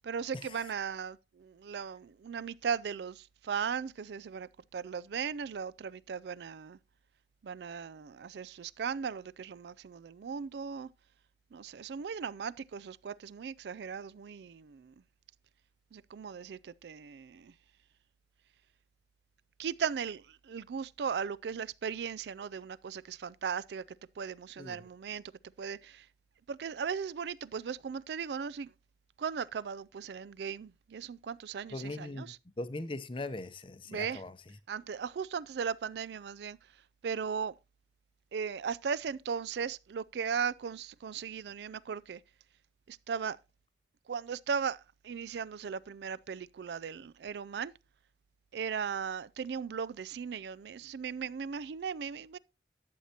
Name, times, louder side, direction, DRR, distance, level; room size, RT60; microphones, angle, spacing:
voice 1, 0.0-6.8 7.4-10.9 11.5-14.9 15.9-17.5 19.6-23.8 24.2-25.2 25.6-26.0 26.5-28.7 29.2-32.4 33.9-34.2 34.7-36.6 37.0-37.5 38.3-42.2 42.9-43.4 44.1-47.7 48.5-52.4, right 6 dB, 70° right, 0.4 m, -37 dB
voice 2, 31.7-34.3, left 2 dB, 30° left, 0.7 m, -40 dB
11.5 x 7.3 x 2.8 m
head